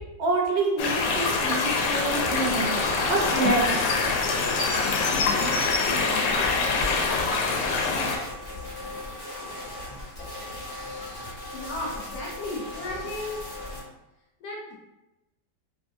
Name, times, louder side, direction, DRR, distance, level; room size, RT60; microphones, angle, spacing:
voice 1, 0.2-2.8 3.1-3.7, right 3 dB, 80° right, 1 dB, 1.3 m, -26 dB
sound 1, 0.8-8.2, left 4 dB, 85° left, 1.3 m, -25 dB
sound 2, 1.6-13.8, left 2 dB, 35° left, 0.8 m, -38 dB
sound 3, 6.0-8.0, left 1 dB, 45° right, 0.5 m, -40 dB
voice 2, 11.5-13.4 14.4-14.8, left 2 dB, 70° left, -2 dB, 1.0 m, -34 dB
3.3 x 2.5 x 2.6 m, 0.97 s
omnidirectional pair, 1.9 m